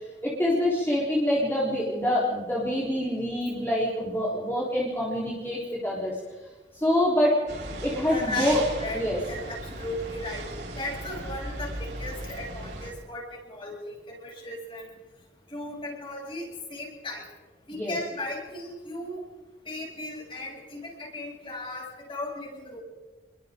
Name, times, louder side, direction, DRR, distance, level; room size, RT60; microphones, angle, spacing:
voice 1, 0.2-6.1 6.8-7.4 7.8-8.6 8.9-9.2 17.7-18.0, left 1 dB, 10° left, -6 dB, 4.0 m, -26 dB
sound 1, 7.5-12.9, right 1 dB, 60° right, 5.5 m, -37 dB
voice 2, 8.0-10.5 10.8-15.0 15.5-17.3 17.7-19.2 19.6-22.8, left 1 dB, 30° left, -2 dB, 7.7 m, -36 dB
29.5 x 23.0 x 3.9 m, 1.3 s
head